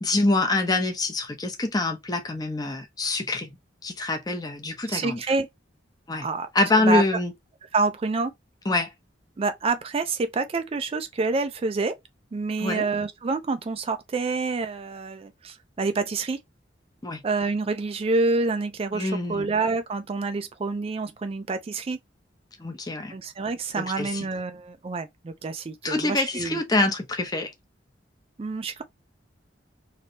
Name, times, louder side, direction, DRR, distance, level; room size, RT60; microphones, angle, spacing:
voice 1, 0.0-3.5 3.8-5.2 6.1-6.3 6.5-7.3 8.7-8.9 12.6-12.9 17.0-17.2 18.9-19.5 22.6-23.1 23.8-24.1 25.8-27.5, left 2 dB, 20° left, 0.7 m, -25 dB
voice 2, 4.9-5.5 6.2-6.5 6.8-7.0 7.7-8.3 9.4-11.9 12.3-16.4 17.2-22.0 23.1-26.6 28.4-28.8, right 3 dB, 30° right, 0.3 m, -27 dB
3.2 x 2.7 x 2.7 m
head